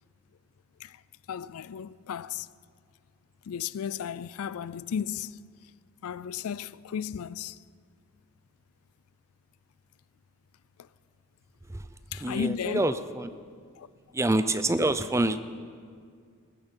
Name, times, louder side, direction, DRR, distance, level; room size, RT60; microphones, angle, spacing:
voice 1, 1.3-2.5 3.5-5.4 6.0-7.6 12.1-12.9 13.8-13.9, left 7 dB, 75° left, 0.4 m, -34 dB
voice 2, 12.2-13.4 14.1-15.4, right 2 dB, 15° right, 0.5 m, -27 dB
18.5 x 14.5 x 5.3 m
head